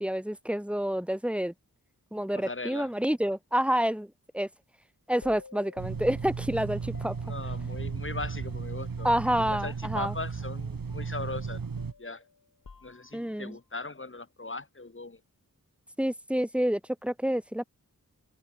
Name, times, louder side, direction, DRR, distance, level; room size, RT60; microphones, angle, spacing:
voice 1, 0.0-1.5 2.1-4.5 5.1-7.2 9.0-10.1 13.1-13.6 16.0-17.7, equal, 5° right, 2.7 m, -28 dB
voice 2, 2.3-2.9 7.2-9.1 9.4-11.6 12.0-12.2 12.8-15.2, left 3 dB, 35° left, 2.8 m, -39 dB
sound 1, 5.2-9.7 9.9-10.1 10.4-13.4, left 4 dB, 70° left, 5.4 m, -53 dB
sound 2, 5.8-11.9, right 5 dB, 75° right, 4.0 m, -35 dB
wide cardioid pair, 95°, 35 cm